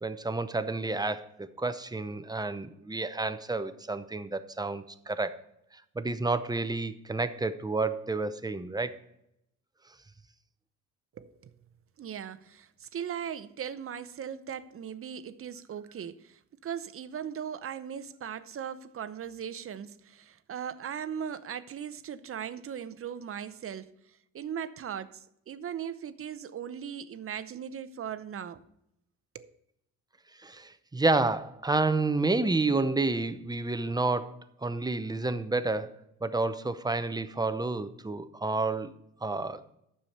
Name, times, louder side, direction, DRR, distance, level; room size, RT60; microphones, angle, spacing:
voice 1, 0.0-5.4 6.0-8.9 30.4-35.9 36.2-38.9 39.2-39.8, right 3 dB, 15° right, 0.7 m, -30 dB
voice 2, 11.2-11.5 12.0-23.9 24.3-28.6 29.3-29.5, right 8 dB, 45° right, 0.7 m, -38 dB
9.7 x 7.0 x 4.3 m
cardioid pair, 90°, 30 cm